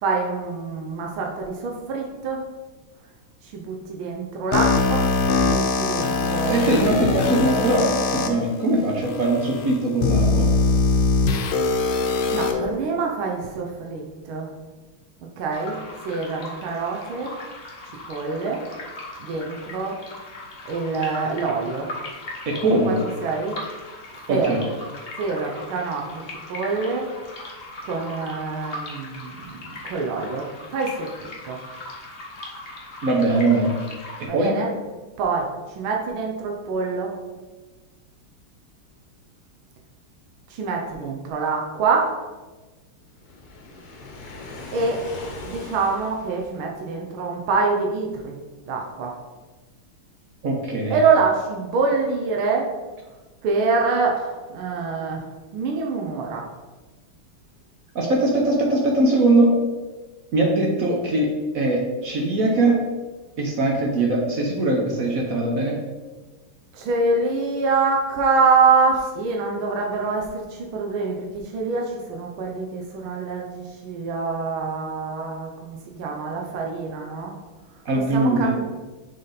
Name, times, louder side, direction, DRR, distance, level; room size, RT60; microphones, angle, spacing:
voice 1, 0.0-2.4 3.5-5.1 5.4-6.7 12.3-14.5 15.4-15.8 16.0-17.3 18.1-18.6 19.2-20.0 20.6-21.9 22.8-22.9 23.2-23.6 24.3-24.7 25.2-26.2 26.5-27.0 27.8-31.1 31.4-31.6 34.3-34.7 35.2-35.4 35.8-37.2 40.5-42.1 44.7-45.0 45.4-48.4 48.7-49.2 50.9-52.7 53.4-55.3 55.5-56.4 66.7-77.4 78.1-78.6, right 4 dB, 75° right, 0 dB, 1.6 m, -25 dB
sound 1, 4.5-8.3 9.0-9.1 10.0-12.5, left 3 dB, 75° left, 1.5 m, -21 dB
voice 2, 6.5-10.5 22.5-23.0 24.3-24.6 33.0-33.7 34.2-34.5 50.4-51.0 57.9-59.5 60.3-61.3 61.5-62.8 63.4-65.7 77.8-78.5, right 2 dB, 55° right, 0 dB, 1.0 m, -21 dB
sound 2, 15.5-34.3, left 2 dB, 40° left, 0.9 m, -39 dB
Waves surf, 43.2-46.7, left 3 dB, 55° left, 1.3 m, -39 dB
6.4 x 4.2 x 4.0 m, 1.2 s
omnidirectional pair, 2.4 m